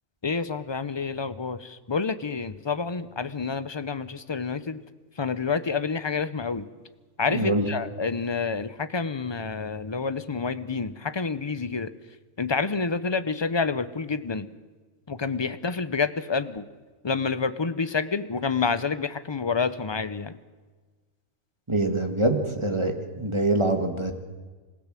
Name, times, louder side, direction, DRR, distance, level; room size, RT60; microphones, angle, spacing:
voice 1, 0.2-4.8 5.2-6.7 7.2-11.9 12.4-14.5 15.1-16.6 17.0-20.3, left 5 dB, 25° left, 13 dB, 0.7 m, -28 dB
voice 2, 7.3-7.6 21.7-24.1, right 2 dB, 20° right, 5 dB, 1.9 m, -24 dB
27.0 x 16.0 x 7.6 m, 1.4 s
omnidirectional pair, 1.4 m